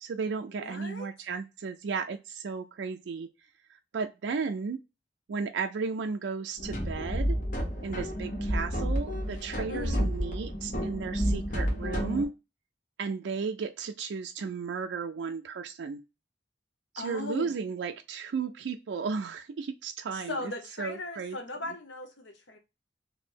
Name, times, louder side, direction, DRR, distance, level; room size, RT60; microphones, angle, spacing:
voice 1, 0.0-3.3 3.7-4.8 5.3-7.4 7.8-12.3 13.0-16.0 16.9-20.4 20.8-21.4, right 5 dB, 75° right, 0.4 m, -34 dB
voice 2, 0.6-1.1 9.7-10.1 17.0-17.6 20.1-22.6, left 2 dB, 80° left, 0.9 m, -38 dB
sound 1, 6.6-12.2, equal, 50° left, 1.2 m, -30 dB
3.1 x 2.6 x 4.4 m
head